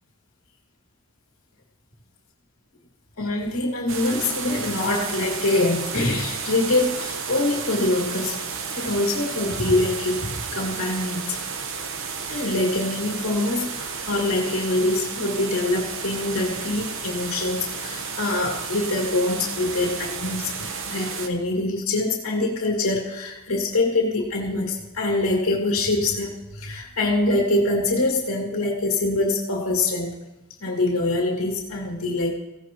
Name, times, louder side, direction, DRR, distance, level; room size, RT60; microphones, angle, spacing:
voice 1, 3.2-11.3 12.3-30.1 30.6-32.3, left 2 dB, 85° left, -1 dB, 2.1 m, -24 dB
sound 1, 3.9-21.3, right 5 dB, 65° right, 1.0 m, -32 dB
20.0 x 16.0 x 3.0 m, 1.0 s
head